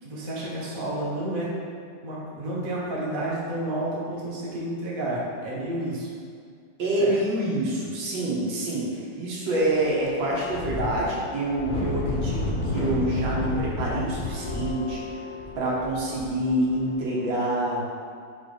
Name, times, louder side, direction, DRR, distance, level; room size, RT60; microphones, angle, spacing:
voice 1, 0.0-1.5 2.0-6.1 7.0-7.2, right 1 dB, 30° right, -6 dB, 1.1 m, -30 dB
voice 2, 6.8-15.0 15.6-17.9, right 1 dB, 75° right, -5 dB, 1.8 m, -26 dB
sound 1, 9.5-17.3, left 2 dB, 50° left, 0.6 m, -31 dB
4.7 x 3.8 x 5.2 m, 2.3 s
omnidirectional pair, 2.2 m